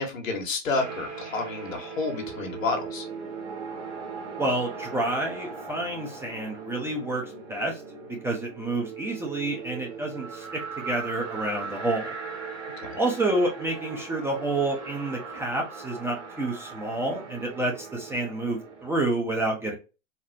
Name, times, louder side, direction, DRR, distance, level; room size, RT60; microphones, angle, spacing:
voice 1, 0.0-3.0 12.8-12.9, left 3 dB, 85° left, 3 dB, 1.4 m, -30 dB
sound 1, 0.7-19.2, right 5 dB, 65° right, 1.5 m, -39 dB
voice 2, 4.4-7.8 8.2-10.5 10.8-12.1 12.9-19.7, right 2 dB, 5° right, 0 dB, 0.6 m, -29 dB
4.3 x 2.0 x 2.6 m, 0.31 s
hypercardioid pair, 120°, 38 cm